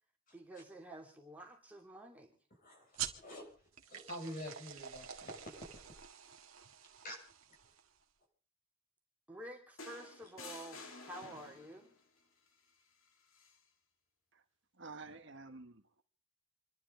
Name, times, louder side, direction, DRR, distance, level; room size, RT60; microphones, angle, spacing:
voice 1, 0.3-2.4 9.3-11.9, right 1 dB, 5° right, 2.8 m, -50 dB
voice 2, 2.5-5.5 7.0-7.3, equal, 40° left, 6.5 m, -48 dB
sound 1, 2.9-8.0, right 9 dB, 75° right, 1.8 m, -47 dB
sound 2, 9.8-11.9 13.3-13.5, left 3 dB, 70° left, 2.4 m, -51 dB
voice 3, 14.8-16.0, right 3 dB, 60° right, 1.5 m, -50 dB
28.0 x 12.0 x 3.8 m
head